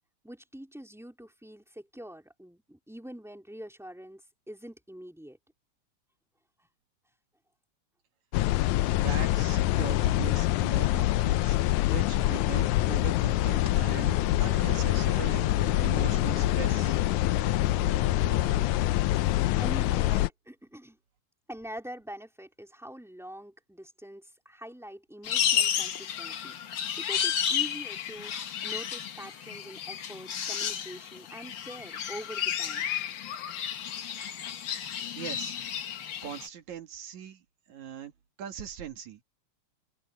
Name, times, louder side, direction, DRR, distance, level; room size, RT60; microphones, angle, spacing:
voice 1, 0.2-5.4 18.4-18.9 19.6-21.0 21.5-26.6 27.0-32.9, equal, ahead, 3.5 m, -44 dB
sound 1, 8.3-20.3, left 16 dB, 85° left, 2.0 m, -25 dB
voice 2, 8.9-11.6 11.9-17.0 34.9-35.6 36.2-37.4 37.7-38.1 38.4-39.2, right 9 dB, 75° right, 3.2 m, -41 dB
sound 2, 13.1-18.6, right 4 dB, 25° right, 2.4 m, -44 dB
sound 3, 25.2-36.5, left 9 dB, 55° left, 1.5 m, -32 dB
open air
omnidirectional pair, 3.3 m